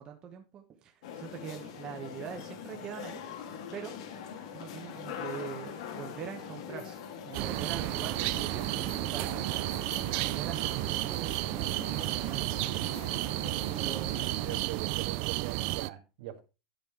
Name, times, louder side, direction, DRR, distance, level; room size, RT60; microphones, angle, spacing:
voice 1, 0.0-3.2 3.7-3.9 4.5-9.8 10.1-12.7 13.8-14.3, right 8 dB, 25° right, 3 dB, 1.1 m, -43 dB
sound 1, 1.0-14.6, left 7 dB, 65° left, 1.8 m, -43 dB
sound 2, 7.3-15.9, right 20 dB, 45° right, 0.4 m, -32 dB
voice 2, 13.7-16.4, right 12 dB, 60° right, 5 dB, 1.8 m, -42 dB
10.5 x 5.5 x 4.7 m, 0.30 s
supercardioid pair, 160°, 3 cm